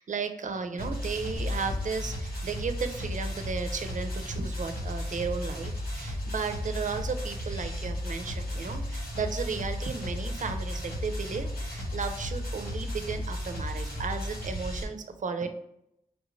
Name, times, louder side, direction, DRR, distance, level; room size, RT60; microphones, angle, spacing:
voice 1, 0.0-15.5, right 5 dB, 55° right, 8 dB, 0.5 m, -34 dB
sound 1, 0.8-14.8, equal, 80° left, 1.0 m, -34 dB
sound 2, 1.3-3.6, left 3 dB, 40° left, 0.5 m, -39 dB
3.4 x 2.5 x 3.0 m, 0.78 s
cardioid pair, 60°, 16 cm